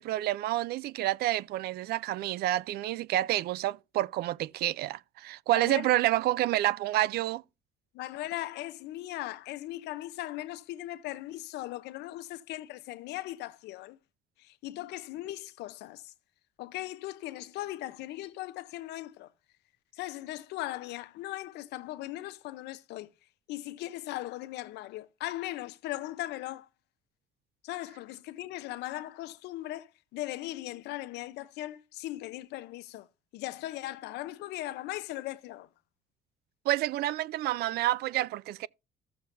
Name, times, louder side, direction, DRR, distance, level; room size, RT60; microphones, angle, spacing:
voice 1, 0.0-7.4 36.7-38.7, right 15 dB, 70° right, 0.4 m, -29 dB
voice 2, 5.5-5.9 7.9-14.0 14.4-16.1 16.6-19.3 19.9-23.1 23.5-26.7 27.6-33.1 33.3-35.7, left 16 dB, 80° left, 0.7 m, -38 dB
14.0 x 6.9 x 2.6 m
cardioid pair, 110°, 17 cm